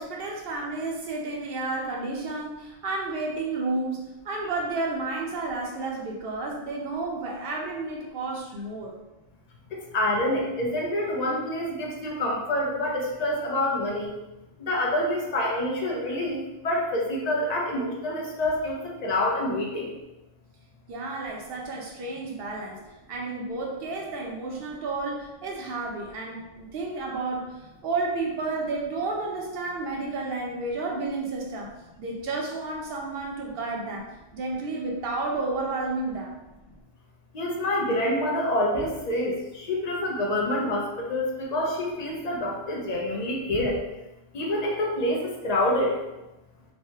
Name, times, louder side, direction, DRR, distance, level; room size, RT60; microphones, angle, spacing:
voice 1, 0.0-9.0 20.9-22.8 23.1-36.3, right 3 dB, 60° right, -1 dB, 0.7 m, -31 dB
voice 2, 9.7-14.1 14.6-18.8 19.0-19.9 37.3-43.8 44.3-45.9, left 1 dB, 50° left, -2 dB, 0.5 m, -27 dB
3.1 x 2.1 x 2.7 m, 1.0 s
omnidirectional pair, 1.2 m